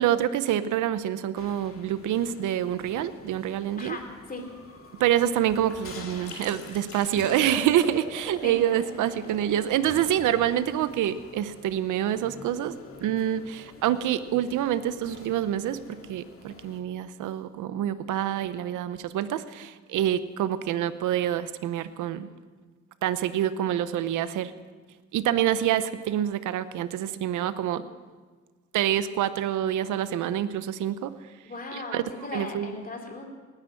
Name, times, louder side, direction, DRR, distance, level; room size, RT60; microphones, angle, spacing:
voice 1, 0.0-4.0 5.0-12.7 13.0-22.3 23.0-24.5 25.1-27.8 28.7-31.1 31.7-32.0 32.3-32.7, right 11 dB, 80° right, 13 dB, 0.8 m, -26 dB
sound 1, 1.4-16.8, left 3 dB, 45° left, 2.5 m, -48 dB
voice 2, 3.8-4.4 8.4-8.6 31.4-33.2, left 2 dB, 30° left, 3 dB, 3.0 m, -37 dB
sound 2, 6.2-11.8, left 2 dB, 70° left, 5.6 m, -43 dB
18.5 x 9.9 x 7.6 m, 1.4 s
cardioid pair, 90°, 30 cm